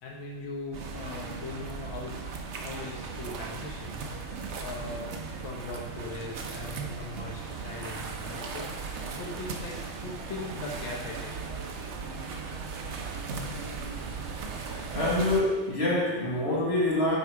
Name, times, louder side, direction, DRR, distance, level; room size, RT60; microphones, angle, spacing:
voice 1, 0.0-2.2 2.6-4.0 4.6-8.7 9.1-11.4 11.7-11.8 12.2-12.3, left 3 dB, 85° left, -1 dB, 1.8 m, -40 dB
sound 1, 0.7-15.4, right 4 dB, 80° right, 0.6 m, -37 dB
voice 2, 14.9-17.2, left 1 dB, 35° left, -5 dB, 1.5 m, -26 dB
8.1 x 3.6 x 4.6 m, 1.2 s
omnidirectional pair, 2.1 m